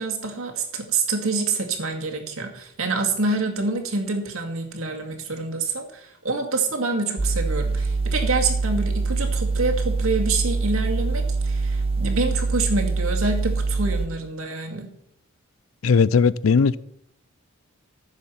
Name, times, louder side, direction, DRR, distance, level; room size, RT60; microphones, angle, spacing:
voice 1, 0.0-14.9, right 3 dB, 80° right, 2.2 m, -26 dB
sound 1, 7.2-14.1, right 3 dB, 25° right, 0.4 m, -24 dB
voice 2, 15.8-16.8, left 5 dB, 75° left, 0.4 m, -18 dB
14.5 x 7.3 x 5.7 m
head